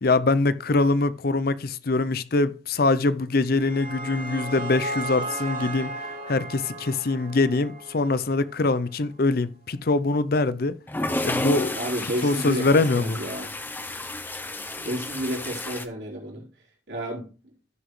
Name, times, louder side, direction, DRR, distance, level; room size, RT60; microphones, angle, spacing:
voice 1, 0.0-5.9 6.3-10.8 11.2-11.7 12.2-13.2, left 3 dB, 55° left, 0.6 m, -23 dB
sound 1, 3.2-8.4, right 2 dB, 45° right, 2.5 m, -35 dB
sound 2, 10.9-15.8, left 2 dB, 10° left, 0.6 m, -31 dB
voice 2, 11.7-13.5 14.8-16.5 16.9-17.3, equal, 70° right, 3.8 m, -31 dB
16.0 x 6.1 x 3.2 m
head